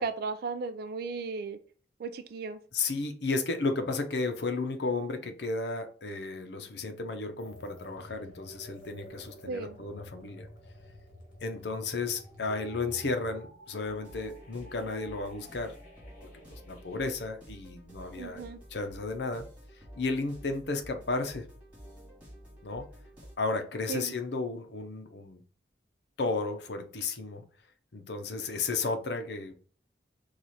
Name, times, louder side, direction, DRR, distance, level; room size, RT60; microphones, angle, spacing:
voice 1, 0.0-1.6 2.0-2.6 9.5-9.8 18.2-18.6 23.9-24.1, right 4 dB, 55° right, 10 dB, 0.3 m, -35 dB
voice 2, 2.7-10.5 11.4-15.7 16.5-18.4 18.7-19.5 20.0-21.4 22.6-22.9 23.4-25.4 26.2-27.4 27.9-29.5, left 3 dB, 70° left, 7 dB, 0.7 m, -33 dB
sound 1, 7.4-17.3, equal, 50° left, 1.5 m, -51 dB
sound 2, 13.8-23.3, equal, 10° right, 1.8 m, -50 dB
4.7 x 2.4 x 4.1 m, 0.43 s
head